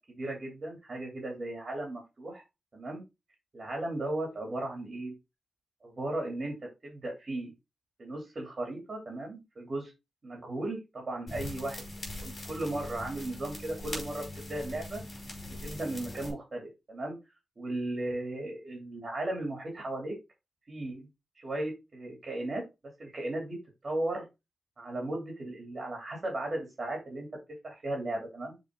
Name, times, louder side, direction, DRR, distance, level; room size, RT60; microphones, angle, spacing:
voice 1, 0.1-2.4 2.7-3.0 3.5-5.1 5.8-6.6 6.8-7.5 8.0-9.9 10.2-15.0 15.6-17.2 17.6-20.1 20.7-21.1 21.4-22.6 23.0-23.6 23.8-24.2 24.8-27.3 27.6-28.5, right 1 dB, 30° right, 1 dB, 2.7 m, -36 dB
sound 1, 11.3-16.3, left 1 dB, 40° left, 4.4 m, -41 dB
7.0 x 4.3 x 3.7 m, 0.24 s
wide cardioid pair, 155°, 0 cm